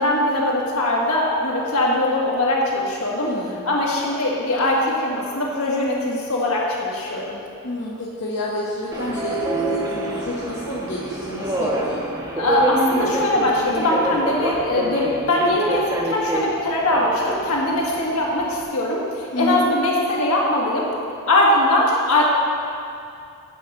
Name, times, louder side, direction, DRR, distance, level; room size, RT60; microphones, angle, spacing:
voice 1, 0.0-3.3 3.7-7.4 12.4-20.9 21.3-22.2, left 1 dB, 70° left, -4 dB, 1.7 m, -21 dB
voice 2, 3.2-3.6 7.6-12.0 19.3-19.7, left 1 dB, 50° left, -6 dB, 1.0 m, -29 dB
Subway metro underground, 8.9-18.6, right 1 dB, 15° right, 0.8 m, -26 dB
9.1 x 4.7 x 6.7 m, 2.5 s
head